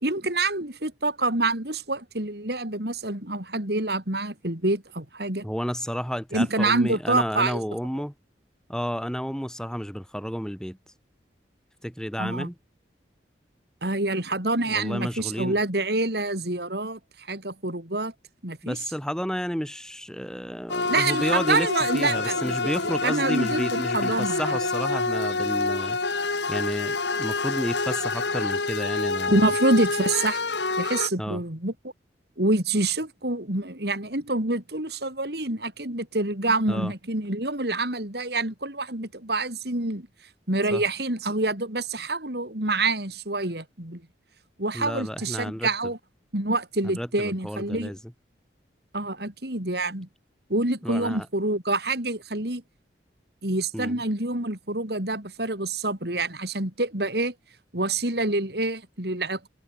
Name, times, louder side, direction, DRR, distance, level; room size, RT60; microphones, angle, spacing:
voice 1, 0.0-5.5 6.3-7.6 12.2-12.5 13.8-17.0 17.3-18.1 18.4-18.8 20.9-24.6 29.3-30.4 30.8-31.9 32.4-40.1 40.5-44.0 44.6-46.0 46.3-48.0 48.9-50.1 50.5-52.6 53.4-57.3 57.7-59.5, right 2 dB, 60° right, 4.2 m, -27 dB
voice 2, 5.4-8.1 8.7-10.8 11.8-12.5 14.7-15.6 18.6-21.7 21.9-26.0 26.5-29.4 31.2-31.4 36.7-36.9 40.7-40.8 44.7-45.7 46.8-48.0 50.8-51.3 53.7-54.0, equal, 5° left, 7.6 m, -31 dB
sound 1, 20.7-31.1, left 3 dB, 75° left, 3.3 m, -27 dB
head